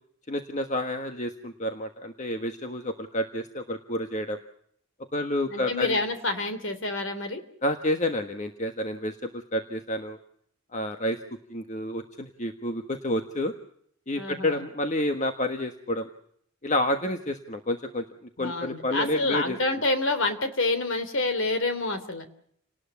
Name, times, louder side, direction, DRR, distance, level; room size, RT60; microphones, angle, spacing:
voice 1, 0.3-4.4 5.1-6.0 7.6-10.2 10.7-11.2 11.5-13.5 14.1-16.1 16.6-18.0 18.4-19.6, left 1 dB, 35° left, 6 dB, 1.4 m, -29 dB
voice 2, 5.5-7.4 14.1-14.6 18.4-22.3, left 2 dB, 60° left, 9 dB, 3.3 m, -28 dB
29.0 x 19.0 x 7.2 m, 0.67 s
head